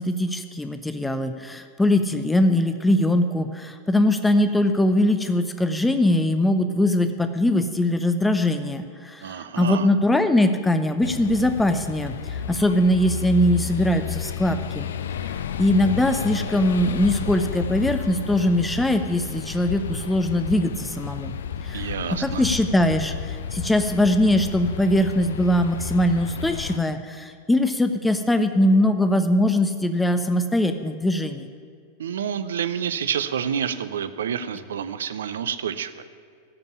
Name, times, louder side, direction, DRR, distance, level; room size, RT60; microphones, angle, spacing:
voice 1, 0.0-14.9 15.6-21.3 21.6-21.9 22.2-31.5, left 1 dB, 5° left, 9 dB, 0.6 m, -21 dB
voice 2, 9.2-9.9 21.7-22.4 32.0-36.0, right 8 dB, 65° right, 12 dB, 0.6 m, -28 dB
sound 1, 11.0-26.8, left 7 dB, 65° left, 0.5 m, -32 dB
14.5 x 5.3 x 9.7 m, 2.3 s
figure-of-eight pair, 90°, 0 cm